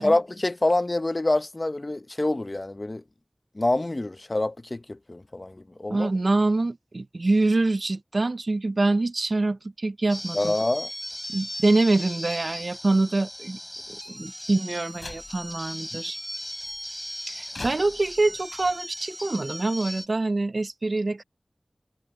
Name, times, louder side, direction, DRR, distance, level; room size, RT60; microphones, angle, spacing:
voice 1, 0.0-3.0 3.5-6.1 10.3-10.9 15.9-16.0, left 2 dB, 45° left, 0.9 m, -26 dB
voice 2, 5.9-10.5 11.3-13.6 14.1-16.2 17.3-21.2, right 2 dB, 70° right, 0.6 m, -25 dB
sound 1, 10.1-20.1, equal, 10° left, 4.4 m, -38 dB
sound 2, 14.9-15.8 16.6-17.1 17.5-18.8, left 3 dB, 75° left, 3.2 m, -43 dB
wide cardioid pair, 45°, 0 cm